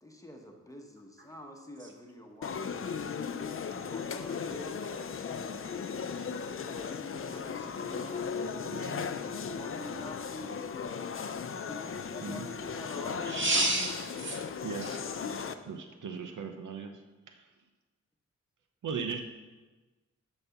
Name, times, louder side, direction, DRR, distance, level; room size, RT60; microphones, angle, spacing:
voice 1, 0.0-3.1 3.9-4.8 6.3-11.0 11.6-13.3, left 1 dB, 10° left, 2 dB, 1.0 m, -47 dB
sound 1, 2.4-15.5, left 6 dB, 45° left, 0.5 m, -37 dB
voice 2, 7.3-7.7 8.0-8.1 13.2-14.4 14.8-15.0, right 2 dB, 40° right, 0 dB, 1.9 m, -31 dB
voice 3, 8.7-9.0 12.2-12.5 14.6-14.9 15.6-17.5 18.8-19.2, right 6 dB, 80° right, 6 dB, 0.8 m, -39 dB
11.0 x 4.1 x 7.0 m, 1.2 s
wide cardioid pair, 125°, 30 cm